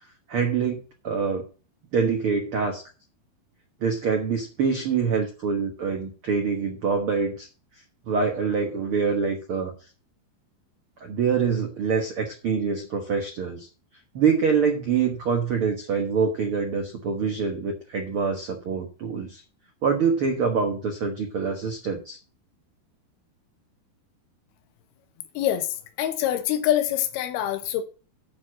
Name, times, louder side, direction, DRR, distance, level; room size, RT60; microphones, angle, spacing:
voice 1, 0.3-1.4 1.9-2.8 3.8-7.5 8.1-9.7 11.0-13.7 14.1-19.4 19.8-22.2, right 5 dB, 85° right, 1.2 m, -25 dB
voice 2, 25.4-25.7 26.0-27.8, left 11 dB, 80° left, 2.9 m, -25 dB
11.0 x 4.7 x 7.4 m
omnidirectional pair, 4.5 m